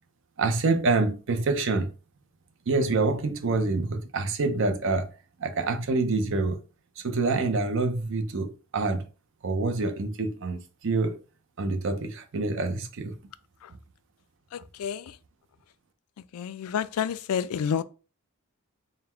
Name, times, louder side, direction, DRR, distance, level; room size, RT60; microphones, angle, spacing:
voice 1, 0.4-1.9 2.7-5.1 5.4-6.6 7.0-9.0 9.4-11.2 11.6-13.1, right 3 dB, 60° right, 0.6 m, -26 dB
voice 2, 14.5-15.2 16.2-17.8, left 7 dB, 85° left, 0.3 m, -30 dB
3.9 x 2.1 x 4.3 m
head